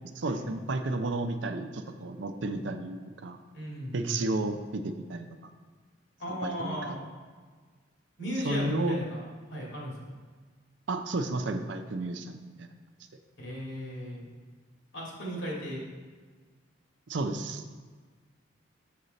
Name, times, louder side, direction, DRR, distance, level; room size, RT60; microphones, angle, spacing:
voice 1, 0.2-3.4 3.9-5.3 6.3-7.0 8.4-9.0 10.9-12.7 17.1-17.6, right 2 dB, 65° right, 7 dB, 0.5 m, -32 dB
voice 2, 3.5-4.3 6.2-7.0 8.2-9.2 9.5-10.1 13.4-14.2 14.9-15.8, equal, 75° left, -4 dB, 2.3 m, -36 dB
6.7 x 6.5 x 4.0 m, 1.5 s
head